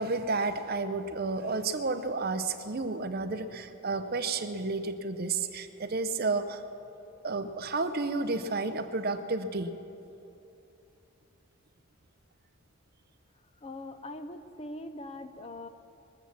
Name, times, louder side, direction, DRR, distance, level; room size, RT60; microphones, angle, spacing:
voice 1, 0.0-6.6 7.2-9.7, right 3 dB, 45° right, 9 dB, 0.7 m, -31 dB
voice 2, 13.6-15.7, left 1 dB, 25° left, 9 dB, 0.6 m, -42 dB
21.5 x 7.3 x 7.3 m, 2.8 s
head